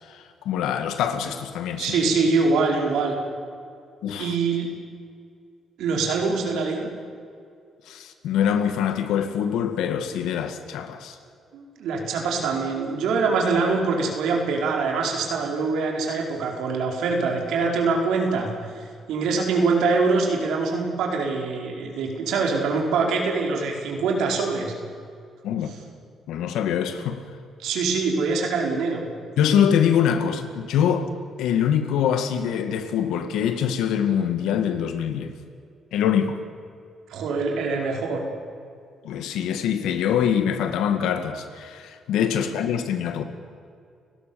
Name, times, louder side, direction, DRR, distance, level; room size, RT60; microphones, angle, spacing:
voice 1, 0.1-1.9 4.0-4.4 7.9-11.2 25.4-25.7 26.3-27.2 29.4-31.1 31.4-35.3 35.9-36.4 39.0-43.2, left 8 dB, 90° left, 2.1 m, -24 dB
voice 2, 1.8-3.1 4.2-4.7 5.8-6.9 11.5-18.5 19.1-24.7 27.6-29.1 37.1-38.2, right 4 dB, 85° right, 4.6 m, -24 dB
30.0 x 17.5 x 7.1 m
cardioid pair, 90°, 0 cm